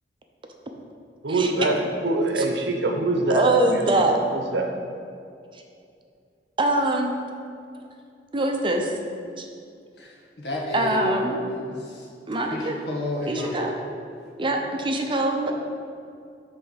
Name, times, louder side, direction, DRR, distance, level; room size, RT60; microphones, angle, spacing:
voice 1, 1.2-3.9 4.3-4.7, right 2 dB, 75° right, 3 dB, 0.8 m, -24 dB
voice 2, 3.3-4.1 6.6-7.1 8.3-8.9 9.4-9.5 10.7-11.4 12.3-12.8 13.3-13.7 14.4-15.5, right 2 dB, 30° right, 3 dB, 0.6 m, -23 dB
voice 3, 10.0-12.0 12.5-13.7, left 1 dB, 70° left, -1 dB, 1.2 m, -31 dB
8.2 x 3.4 x 5.7 m, 2.4 s
head